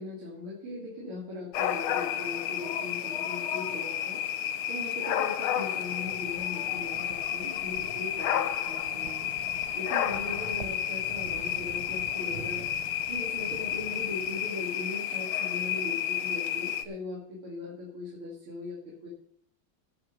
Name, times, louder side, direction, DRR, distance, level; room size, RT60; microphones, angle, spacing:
voice 1, 0.0-4.2 4.7-9.3 9.7-12.7 13.1-19.1, left 2 dB, 80° right, -3 dB, 3.2 m, -39 dB
sound 1, 1.5-16.8, left 10 dB, 80° left, 1.6 m, -31 dB
sound 2, 5.7-14.9, right 7 dB, 65° right, 1.1 m, -48 dB
17.5 x 5.9 x 5.3 m, 0.64 s
omnidirectional pair, 2.3 m